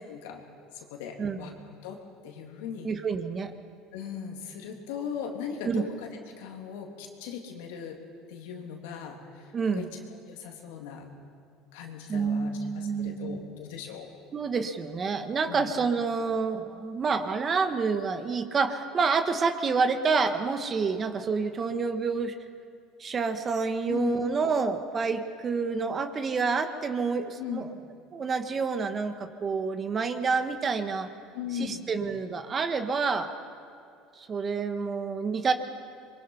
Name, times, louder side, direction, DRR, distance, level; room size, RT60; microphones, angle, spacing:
voice 1, 0.1-0.4 0.7-2.9 3.9-8.0 8.3-11.1 11.7-14.1 15.5-15.7 23.9-24.1 27.4-27.7 31.3-31.9, left 7 dB, 85° left, 2 dB, 3.1 m, -39 dB
voice 2, 2.8-3.5 5.6-5.8 9.5-9.9 12.1-13.5 14.3-22.3 23.0-27.7 28.1-31.1 31.5-33.3 34.2-35.5, right 4 dB, 30° right, 8 dB, 1.5 m, -28 dB
26.0 x 23.0 x 5.7 m, 2.5 s
supercardioid pair, 110°, 0 cm